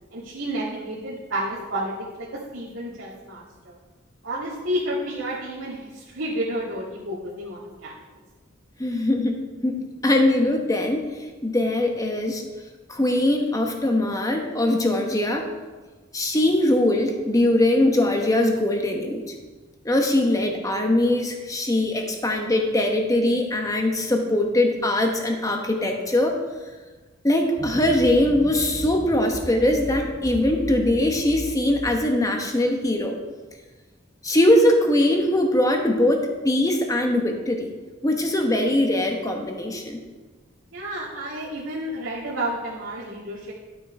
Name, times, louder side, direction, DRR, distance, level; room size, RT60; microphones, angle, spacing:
voice 1, 0.1-3.8 4.2-8.0 40.7-43.5, right 1 dB, 85° right, -8 dB, 2.1 m, -31 dB
voice 2, 8.8-11.0 11.4-12.4 12.9-15.5 16.1-19.2 19.8-26.4 27.2-33.2 34.2-37.7 38.0-40.0, left 1 dB, 20° left, 3 dB, 1.1 m, -21 dB
sound 1, 27.6-32.0, equal, 20° right, 2.1 m, -35 dB
11.5 x 6.1 x 4.3 m, 1.3 s
head